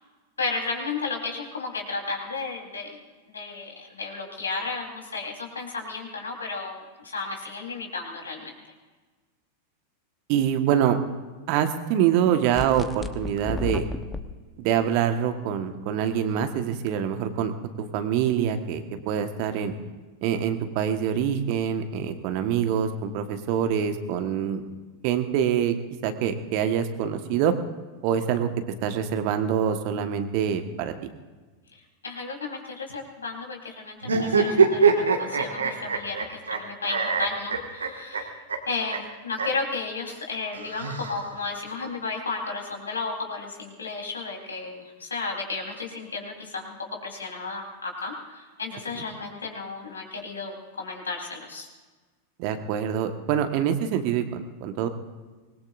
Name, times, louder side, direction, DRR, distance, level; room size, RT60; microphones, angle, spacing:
voice 1, 0.4-3.0 3.3-8.5 31.7-38.3 38.7-46.8 47.0-51.7, left 4 dB, 75° left, 1 dB, 4.1 m, -33 dB
voice 2, 10.3-11.0 11.5-13.9 14.6-19.7 20.2-24.6 25.0-25.7 26.0-27.5 28.0-28.5 28.8-30.9 52.4-54.9, right 9 dB, 45° right, 7 dB, 1.5 m, -25 dB
sound 1, 12.6-14.2, left 3 dB, 10° left, 1.2 m, -32 dB
sound 2, 34.0-36.6 36.9-38.2 38.5-38.6 38.9-39.0 39.3-39.5 40.5-41.5, right 5 dB, 70° right, 1.9 m, -23 dB
25.0 x 21.0 x 2.7 m, 1.3 s
figure-of-eight pair, 90°, 0 cm